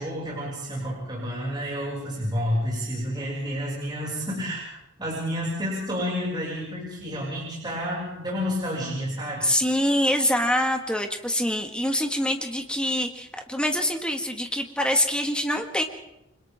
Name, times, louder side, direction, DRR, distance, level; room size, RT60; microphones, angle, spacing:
voice 1, 0.0-4.6 5.0-9.5, equal, 20° right, -5 dB, 6.5 m, -30 dB
voice 2, 9.4-15.8, left 1 dB, 5° left, 3 dB, 1.9 m, -25 dB
29.5 x 25.5 x 3.7 m, 0.89 s
head